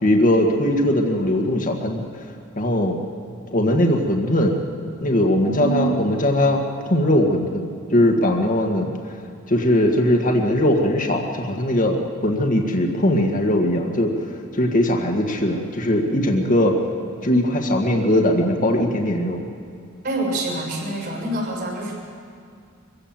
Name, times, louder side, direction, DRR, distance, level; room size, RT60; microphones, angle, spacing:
voice 1, 0.0-2.0 2.6-3.0 3.5-4.6 5.0-8.9 9.5-14.1 14.5-16.8 17.2-19.4, left 1 dB, 40° left, 2 dB, 1.8 m, -20 dB
voice 2, 5.5-5.9 20.0-22.0, right 2 dB, 55° right, 0 dB, 6.7 m, -26 dB
24.0 x 16.0 x 7.7 m, 2.3 s
head